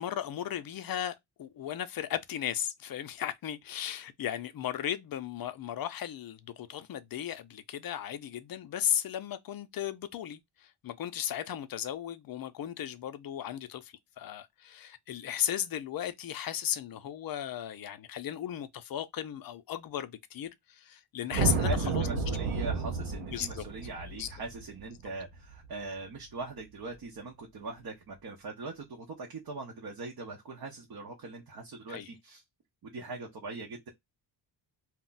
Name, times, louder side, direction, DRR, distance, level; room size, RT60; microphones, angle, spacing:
voice 1, 0.0-10.4 10.8-22.1 23.3-23.6 24.1-24.3 31.9-32.1, left 10 dB, 50° left, 0.4 m, -36 dB
sound 1, 21.3-25.7, right 4 dB, 90° right, 0.7 m, -31 dB
voice 2, 21.5-32.4 32.9-33.9, right 3 dB, 45° right, 0.7 m, -41 dB
2.3 x 2.1 x 3.8 m
wide cardioid pair, 130°, 49 cm